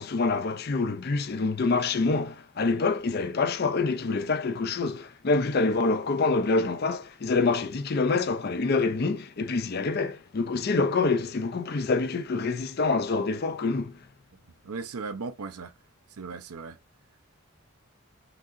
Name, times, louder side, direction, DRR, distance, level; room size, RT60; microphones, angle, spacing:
voice 1, 0.0-14.0, left 3 dB, 45° left, 0.4 m, -26 dB
voice 2, 14.7-15.7 16.2-16.7, right 4 dB, 90° right, 0.6 m, -36 dB
5.9 x 2.8 x 2.5 m
head